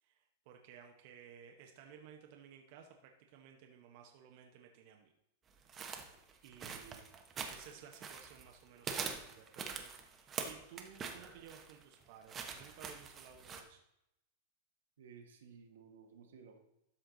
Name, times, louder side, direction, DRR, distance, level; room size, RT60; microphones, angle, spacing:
voice 1, 0.0-5.1 6.4-7.0 7.5-13.8, right 8 dB, 55° right, 3 dB, 1.0 m, -57 dB
sound 1, 5.7-8.5 8.8-13.6, right 6 dB, 25° right, 1.0 m, -44 dB
voice 2, 6.7-7.0 15.0-16.6, right 6 dB, 85° right, 4 dB, 1.4 m, -57 dB
12.5 x 4.5 x 3.9 m, 0.83 s
supercardioid pair, 135°, 0 cm